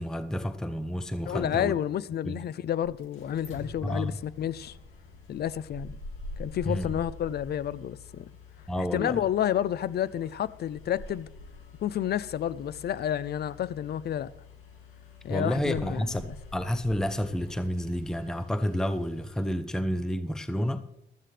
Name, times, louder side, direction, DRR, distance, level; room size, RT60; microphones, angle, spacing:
voice 1, 0.0-1.7 2.2-2.4 3.8-4.2 6.7-7.0 8.7-9.2 15.3-20.8, equal, 5° left, 0.7 m, -30 dB
sound 1, 1.1-19.5, left 3 dB, 85° left, 2.5 m, -46 dB
voice 2, 1.3-4.8 5.3-6.0 6.4-8.3 8.8-11.3 11.8-14.3 15.2-16.1, left 10 dB, 55° left, 0.5 m, -30 dB
15.0 x 13.0 x 3.3 m
cardioid pair, 90°, 20 cm